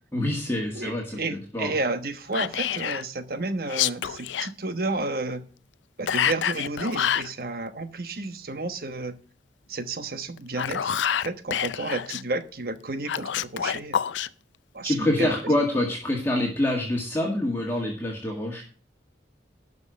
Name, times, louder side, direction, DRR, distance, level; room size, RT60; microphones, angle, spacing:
voice 1, 0.1-1.7 14.8-18.6, left 1 dB, 15° left, 1.8 m, -26 dB
voice 2, 0.7-5.4 6.0-9.2 9.7-14.0 14.7-15.6, right 2 dB, 50° right, 1.2 m, -31 dB
Whispering, 2.3-3.0 3.6-4.5 6.1-7.3 10.4-12.2 13.1-14.3, left 9 dB, 90° left, 0.5 m, -27 dB
12.0 x 5.4 x 6.6 m
head